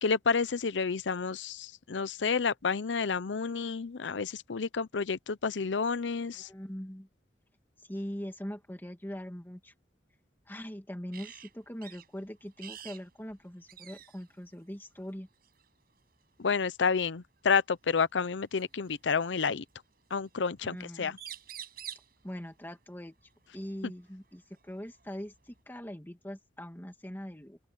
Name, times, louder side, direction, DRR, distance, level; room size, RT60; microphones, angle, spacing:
voice 1, 0.0-6.5 16.4-19.6 20.1-21.2, left 5 dB, 85° left, 0.7 m, -30 dB
voice 2, 6.3-7.1 7.8-9.7 10.5-15.3 20.6-21.2 22.2-23.1 23.5-27.6, equal, 10° left, 2.3 m, -42 dB
sound 1, 11.1-11.5 11.8-12.1 12.6-13.0 13.3-13.4 13.7-14.3 15.4-15.7 17.4-17.5 18.6-19.4 20.8-20.9 21.1-22.1 24.1-24.2 24.6-25.6, right 10 dB, 55° right, 7.5 m, -46 dB
open air
head